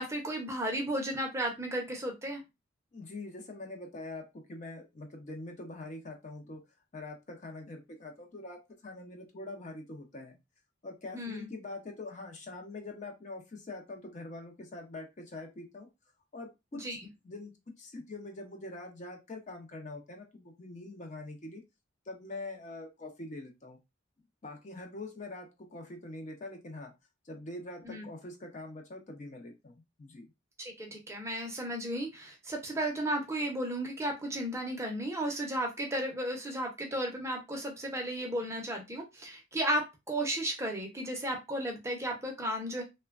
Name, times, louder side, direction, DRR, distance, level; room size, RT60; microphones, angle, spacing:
voice 1, 0.0-2.4 11.1-11.5 16.7-17.0 27.8-28.1 30.6-42.8, right 1 dB, 15° right, 1 dB, 0.5 m, -34 dB
voice 2, 2.9-6.6 6.9-10.4 10.8-15.9 16.3-16.8 17.2-17.5 17.8-21.6 22.1-23.8 24.4-26.9 27.2-30.3, left 2 dB, 35° left, 4 dB, 0.5 m, -44 dB
3.1 x 2.1 x 2.3 m, 0.23 s
head